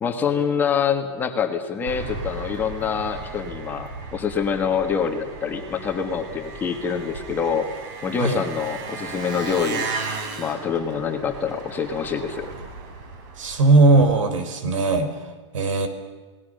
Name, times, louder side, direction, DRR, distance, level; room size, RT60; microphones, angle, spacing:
voice 1, 0.0-7.7 8.0-9.8 10.4-12.5, left 6 dB, 10° left, 5 dB, 1.5 m, -25 dB
Engine, 1.9-14.1, right 4 dB, 40° right, 4.3 m, -35 dB
voice 2, 13.4-15.1 15.5-15.9, right 3 dB, 90° right, 9 dB, 4.4 m, -18 dB
30.0 x 19.0 x 6.6 m, 1.4 s
supercardioid pair, 175°, 16 cm